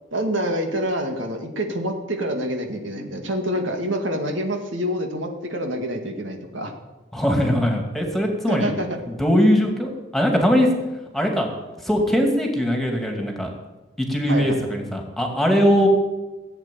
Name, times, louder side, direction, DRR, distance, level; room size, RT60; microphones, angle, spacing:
voice 1, 0.1-6.8 8.5-8.9 14.3-14.6 15.8-15.9, equal, 80° right, 4 dB, 2.1 m, -27 dB
voice 2, 7.1-8.7 9.1-10.7 11.1-11.5 11.8-13.5 14.0-15.9, equal, ahead, 2 dB, 2.5 m, -20 dB
17.0 x 8.1 x 9.3 m, 1.1 s
head